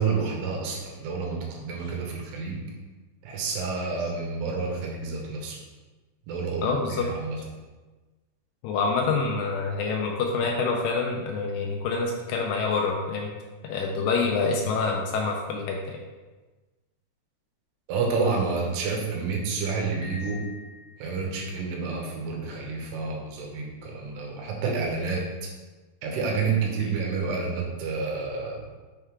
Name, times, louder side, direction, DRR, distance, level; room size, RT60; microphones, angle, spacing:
voice 1, 0.0-2.6 3.2-5.6 6.3-7.4 17.9-20.4 21.0-25.5 26.0-28.7, right 4 dB, 80° right, 0 dB, 3.0 m, -29 dB
voice 2, 6.6-7.1 8.6-13.3 13.6-16.0 26.8-26.9, left 4 dB, 85° left, 0 dB, 1.9 m, -26 dB
Piano, 20.0-21.5, left 3 dB, 55° left, 3.1 m, -44 dB
6.6 x 3.6 x 4.5 m, 1.2 s
omnidirectional pair, 4.7 m